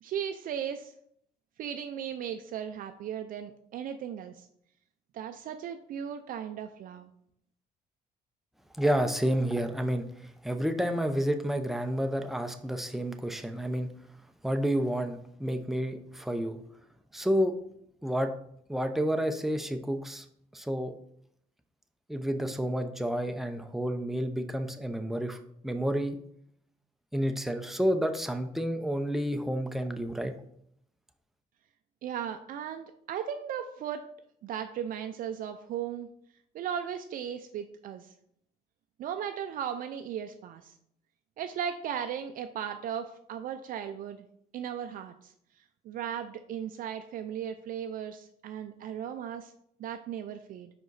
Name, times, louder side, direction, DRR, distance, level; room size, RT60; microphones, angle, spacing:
voice 1, 0.0-0.9 1.6-4.5 5.1-7.1 32.0-34.1 34.4-36.1 36.5-38.1 39.0-40.7 41.4-44.2 44.5-45.3 45.8-49.5 49.8-50.7, right 9 dB, 65° right, 7 dB, 0.4 m, -36 dB
voice 2, 8.8-13.9 14.4-16.6 17.1-17.5 18.0-18.3 18.7-20.3 20.5-20.9 22.1-26.2 27.1-30.3, equal, ahead, 6 dB, 0.6 m, -30 dB
5.2 x 4.8 x 4.0 m, 0.71 s
cardioid pair, 100°, 15 cm